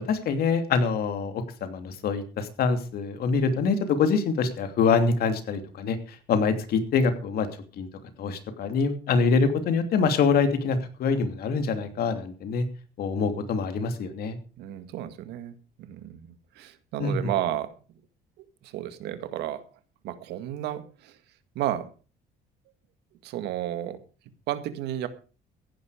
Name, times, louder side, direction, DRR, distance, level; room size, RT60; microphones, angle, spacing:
voice 1, 0.0-6.0 6.3-7.5 7.8-7.9 8.2-12.7 13.0-14.4 17.0-17.2, left 5 dB, 65° left, 8 dB, 2.9 m, -25 dB
voice 2, 14.6-16.3 16.6-17.7 18.6-19.6 20.0-21.2 21.6-21.9 23.2-24.0 24.5-25.1, right 12 dB, 85° right, 11 dB, 1.9 m, -32 dB
15.5 x 11.0 x 5.0 m, 0.36 s
cardioid pair, 110°, 17 cm